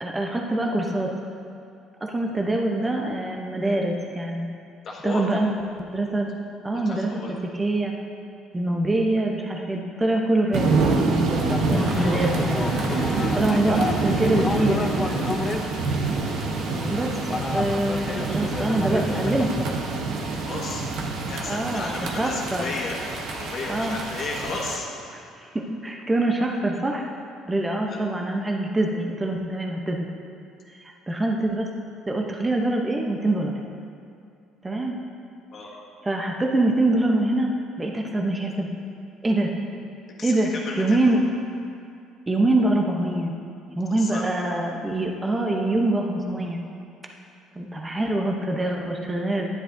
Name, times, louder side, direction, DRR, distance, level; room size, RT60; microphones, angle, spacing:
voice 1, 0.0-1.1 2.0-4.5 5.0-5.5 5.8-6.3 6.6-7.1 7.5-7.9 8.5-11.4 11.9-12.6 13.4-14.9 16.0-16.1 16.9-17.1 17.5-19.5 21.5-22.6 23.7-24.0 25.1-27.1 27.5-30.1 30.8-31.7 32.1-33.5 34.6-35.0 36.0-37.5 37.8-38.7 39.2-39.5 40.2-40.5 40.8-41.2 42.3-43.3 43.8-46.6 47.6-49.5, right 2 dB, 15° right, 1 dB, 0.7 m, -24 dB
voice 2, 4.8-5.4 6.7-7.3 11.9-12.2 20.4-20.8 21.3-24.9 27.9-28.0 35.5-35.7 40.2-41.2 43.9-44.2, left 3 dB, 50° left, -2 dB, 1.5 m, -34 dB
sound 1, 10.5-24.8, right 3 dB, 65° right, 0.9 m, -26 dB
sound 2, 11.4-19.6, left 3 dB, 25° left, 0.5 m, -31 dB
9.9 x 9.8 x 2.7 m, 2.4 s
cardioid pair, 105°, 0 cm